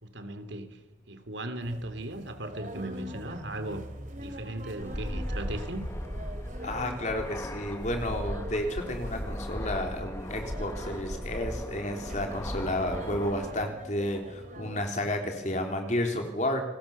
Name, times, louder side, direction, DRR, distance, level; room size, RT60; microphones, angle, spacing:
voice 1, 0.0-0.8 1.1-3.8 4.2-5.9, right 1 dB, 75° right, 9 dB, 2.8 m, -37 dB
sound 1, 1.6-15.1, equal, 40° right, 3.0 m, -44 dB
Fixed-wing aircraft airplane, 4.8-13.7, equal, 15° left, 1.3 m, -37 dB
voice 2, 6.6-16.6, left 1 dB, 40° left, 4 dB, 3.7 m, -31 dB
29.5 x 20.5 x 7.3 m, 1.1 s
head